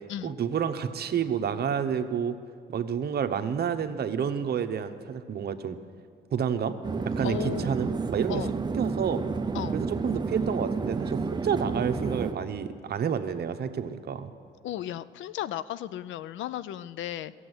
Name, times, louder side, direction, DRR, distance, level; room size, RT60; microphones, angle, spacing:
voice 1, 0.2-2.4 2.7-5.8 6.3-6.7 7.2-8.4 8.7-9.2 9.7-14.3, right 7 dB, 55° right, 9 dB, 0.8 m, -29 dB
sound 1, 6.8-12.3, right 4 dB, 20° right, 0.5 m, -30 dB
voice 2, 7.2-7.8 8.3-8.5 9.5-9.8 14.6-17.3, left 11 dB, 75° left, 16 dB, 0.4 m, -35 dB
15.0 x 7.8 x 8.0 m, 2.2 s
cardioid pair, 90°, 20 cm